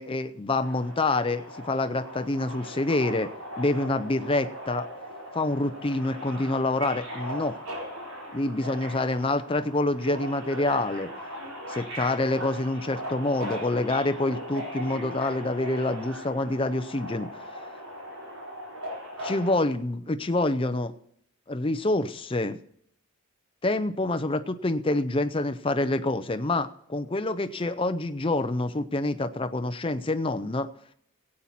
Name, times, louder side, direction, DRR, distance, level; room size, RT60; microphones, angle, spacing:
voice 1, 0.0-3.3 3.6-4.9 5.3-7.6 8.3-11.1 11.7-17.3 19.2-20.9 21.5-22.6 23.6-30.7, left 2 dB, 25° left, 10 dB, 0.6 m, -27 dB
Subway metro underground, 0.6-19.6, equal, 80° right, 4.2 m, -39 dB
17.0 x 8.7 x 4.2 m, 0.70 s
head